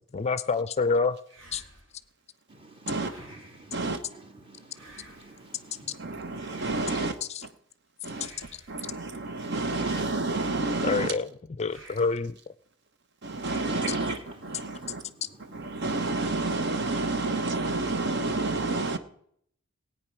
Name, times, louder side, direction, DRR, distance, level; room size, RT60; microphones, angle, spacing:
voice 1, 0.1-1.2 1.5-1.6 7.3-7.5 10.8-11.3 11.6-12.4 13.9-14.0, left 4 dB, 35° left, 0.4 m, -27 dB
sound 1, 1.3-2.1 3.0-3.7 4.7-5.5 6.4-7.2 8.1-8.9 9.8-10.7 11.6-12.3 13.4-14.1, right 1 dB, 75° right, 4.1 m, -52 dB
voice 2, 2.5-7.1 9.4-10.0 13.3-16.2, right 2 dB, 25° right, 2.0 m, -46 dB
voice 3, 3.7-4.0 6.0-7.5 8.0-11.1 13.2-15.0 15.5-19.0, right 3 dB, 60° right, 1.0 m, -30 dB
17.0 x 9.1 x 5.9 m
head